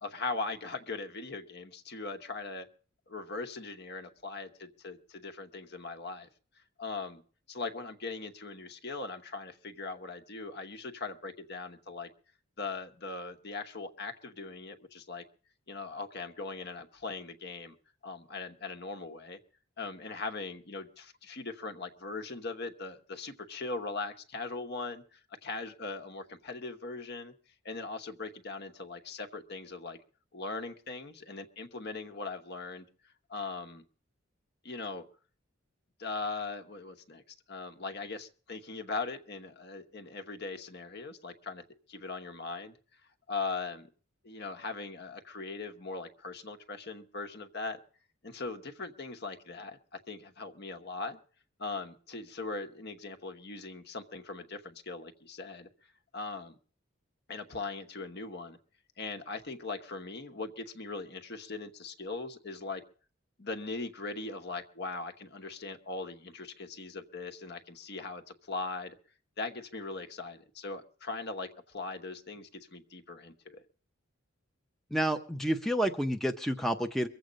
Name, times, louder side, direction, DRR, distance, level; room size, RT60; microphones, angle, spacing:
voice 1, 0.0-2.7 3.1-6.3 6.8-7.2 7.5-12.1 12.6-15.2 15.7-17.8 18.0-19.4 19.8-27.3 27.6-30.0 30.3-32.8 33.3-33.8 34.6-35.0 36.0-37.2 37.5-41.6 41.9-42.8 43.3-43.9 44.2-47.8 48.2-51.2 51.6-55.7 56.1-56.6 57.3-58.6 59.0-62.8 63.4-69.0 69.4-73.6, left 3 dB, 50° left, 8 dB, 1.1 m, -40 dB
voice 2, 74.9-77.1, right 1 dB, ahead, 4 dB, 0.7 m, -29 dB
23.0 x 7.9 x 5.1 m, 0.42 s
head